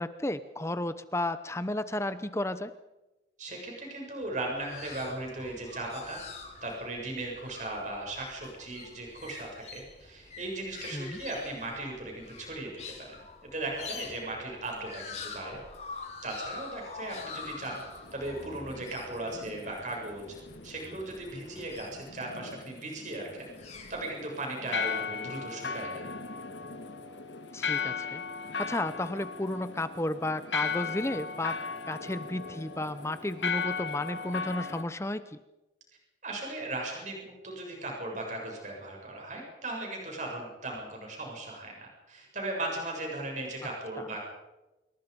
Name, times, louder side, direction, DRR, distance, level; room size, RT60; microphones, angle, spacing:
voice 1, 0.0-2.7 10.9-11.2 27.5-28.2 28.6-31.6 31.9-35.2 44.0-44.1, left 1 dB, 15° left, 12 dB, 0.8 m, -33 dB
voice 2, 3.4-6.2 6.6-12.7 13.0-13.1 13.5-15.6 16.2-17.8 18.1-20.3 20.6-23.5 23.9-26.1 36.2-44.2, right 2 dB, 40° right, 0 dB, 7.7 m, -37 dB
sound 1, 4.2-22.4 23.3-24.0, left 4 dB, 35° left, 4.6 m, -46 dB
sound 2, 17.1-34.8, left 5 dB, 75° left, 1.8 m, -37 dB
26.0 x 23.5 x 5.4 m, 1.0 s
head